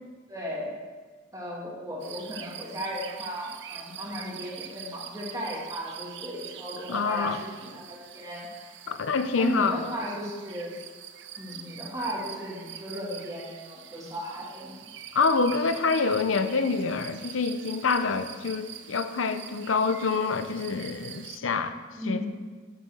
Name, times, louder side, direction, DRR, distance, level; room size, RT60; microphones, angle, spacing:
voice 1, 0.3-0.7 1.3-8.5 9.1-10.7 11.4-14.9 22.0-22.3, equal, 15° right, -4 dB, 2.5 m, -35 dB
sound 1, 2.0-21.4, right 9 dB, 60° right, 0.6 m, -44 dB
voice 2, 6.9-7.4 8.9-9.8 15.1-21.8 22.0-22.3, left 4 dB, 80° left, 10 dB, 0.7 m, -26 dB
9.3 x 8.2 x 6.5 m, 1.5 s
head